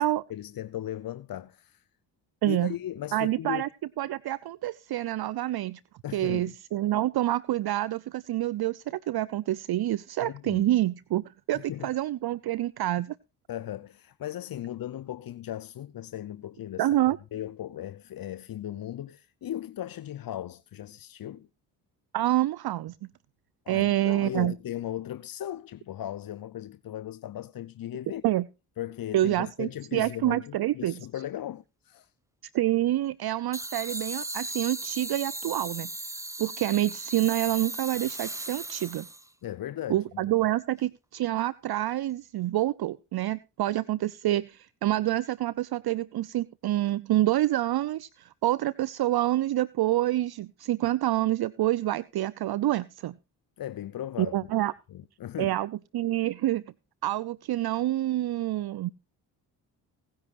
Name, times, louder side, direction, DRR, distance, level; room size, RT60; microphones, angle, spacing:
voice 1, 0.0-1.8 2.5-3.6 6.0-6.5 10.2-10.7 11.5-11.9 13.5-16.9 17.3-21.5 23.7-28.2 28.8-32.1 39.4-40.2 53.6-54.3 54.9-55.6, left 12 dB, 50° left, 0.8 m, -37 dB
voice 2, 2.4-2.7 3.1-3.7 4.0-5.8 6.1-13.2 16.8-17.2 22.1-22.9 23.7-24.5 28.2-28.5 29.1-31.0 32.5-35.9 36.4-39.1 39.9-53.1 54.2-54.7 55.4-56.6 57.0-58.9, right 14 dB, 55° right, 0.6 m, -27 dB
sound 1, 33.5-39.3, right 1 dB, 5° right, 0.9 m, -37 dB
20.0 x 10.5 x 2.6 m
hypercardioid pair, 50°, 46 cm